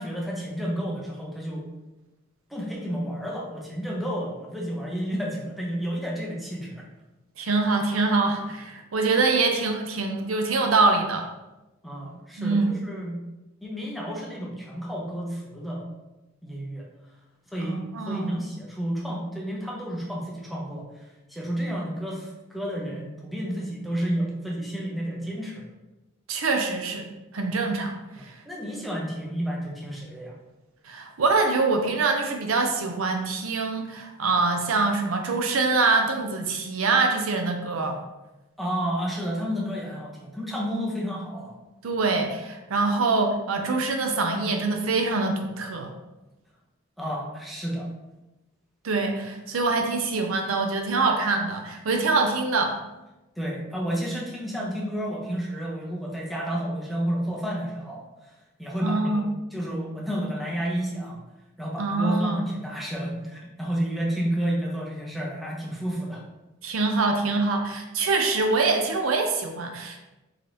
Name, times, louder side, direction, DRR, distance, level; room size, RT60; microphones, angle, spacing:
voice 1, 0.0-1.7 2.5-6.8 11.8-13.2 13.6-15.8 16.4-16.9 17.5-17.8 18.1-25.7 28.2-30.3 38.6-41.6 47.0-47.9 53.4-58.3 58.6-61.2 61.6-66.2, equal, ahead, -3 dB, 0.7 m, -31 dB
voice 2, 7.4-11.2 12.4-12.7 17.6-18.4 26.3-27.0 27.3-28.3 30.8-38.0 41.8-45.9 48.8-52.8 58.8-59.2 61.8-62.4 66.6-70.0, right 3 dB, 75° right, 4 dB, 0.5 m, -24 dB
3.9 x 2.9 x 3.1 m, 1.0 s
head